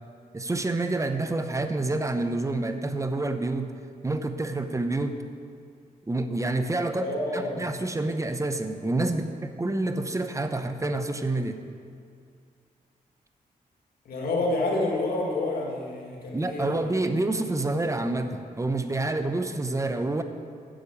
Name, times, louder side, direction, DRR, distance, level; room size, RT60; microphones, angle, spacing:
voice 1, 0.3-3.7 4.0-5.2 6.1-7.1 7.3-11.6 16.3-20.2, right 2 dB, 20° right, 8 dB, 0.8 m, -28 dB
voice 2, 7.0-7.7 14.1-16.9, left 2 dB, 80° left, -1 dB, 2.0 m, -28 dB
8.9 x 6.6 x 8.5 m, 2.3 s
cardioid pair, 80°, 15 cm